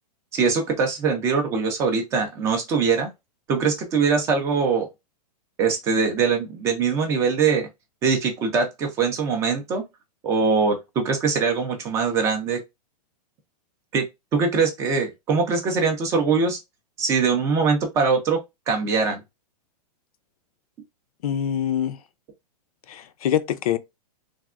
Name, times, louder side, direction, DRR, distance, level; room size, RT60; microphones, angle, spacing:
voice 1, 0.3-3.1 3.5-4.9 5.6-7.7 8.0-9.8 10.2-12.6 13.9-14.1 14.3-16.6 17.0-18.4 18.7-19.2, right 5 dB, 15° right, 0.4 m, -22 dB
voice 2, 21.2-22.0 22.9-23.8, left 10 dB, 60° left, 0.5 m, -24 dB
3.3 x 2.1 x 2.3 m
supercardioid pair, 160°, 20 cm